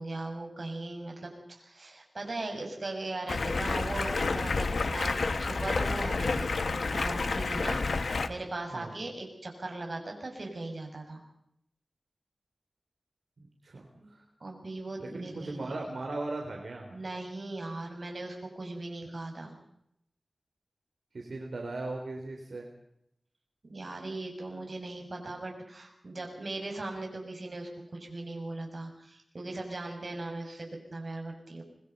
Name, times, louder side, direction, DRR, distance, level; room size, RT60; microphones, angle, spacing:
voice 1, 0.0-11.2 14.0-14.1 14.4-15.5 16.9-19.5 23.6-31.6, right 2 dB, 55° right, 2 dB, 6.6 m, -39 dB
Stream, 3.3-8.3, left 3 dB, 90° left, 1.4 m, -30 dB
voice 2, 13.4-14.2 15.0-17.0 21.1-22.7, right 2 dB, 80° right, 1 dB, 3.8 m, -38 dB
25.5 x 22.0 x 5.5 m, 0.74 s
wide cardioid pair, 90°, 0 cm